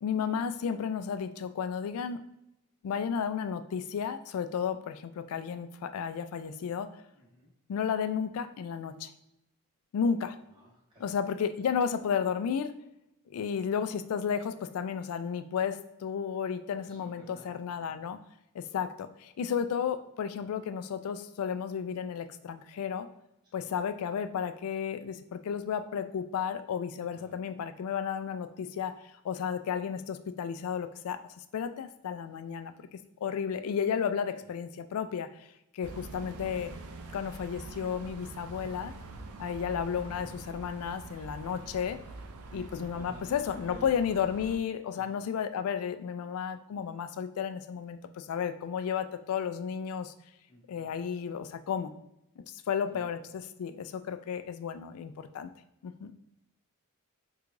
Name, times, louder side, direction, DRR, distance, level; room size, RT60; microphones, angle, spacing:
voice 1, 0.0-2.2 2.8-6.9 7.7-9.1 9.9-10.4 11.0-12.7 13.3-18.2 18.5-23.1 23.5-35.5 35.7-36.7 37.1-38.9 39.4-42.0 42.5-50.1 50.7-51.9 52.4-55.5 55.8-56.1, left 7 dB, 70° left, 11 dB, 0.3 m, -33 dB
voice 2, 7.1-7.5 10.5-11.1 16.8-17.6 17.9-18.0 23.4-23.7 27.1-27.4 39.4-39.5 42.5-42.7 42.9-43.9 44.9-45.3 50.5-51.0 52.9-53.1, equal, 20° right, -5 dB, 1.2 m, -53 dB
sound 1, 35.8-44.6, right 2 dB, 70° right, 0.4 m, -45 dB
4.6 x 2.4 x 2.5 m, 0.84 s
head